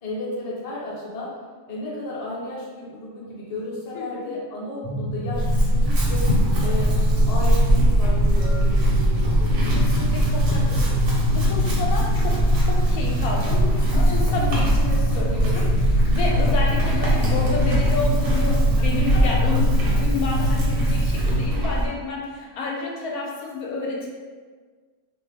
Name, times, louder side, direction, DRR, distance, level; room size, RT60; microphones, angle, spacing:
voice 1, 0.0-1.3 1.7-6.3 6.6-9.6 13.9-14.2 18.8-18.9 19.1-19.2, left 1 dB, 50° left, -6 dB, 0.4 m, -33 dB
voice 2, 3.9-4.3 9.7-24.1, left 3 dB, 70° left, -2 dB, 1.0 m, -30 dB
sound 1, 4.8-21.4, equal, 35° right, 0.5 m, -26 dB
Chewing mastication / Livestock farm animals working animals, 5.3-21.9, right 1 dB, 70° right, 1.2 m, -21 dB
2.5 x 2.2 x 3.4 m, 1.5 s
omnidirectional pair, 1.7 m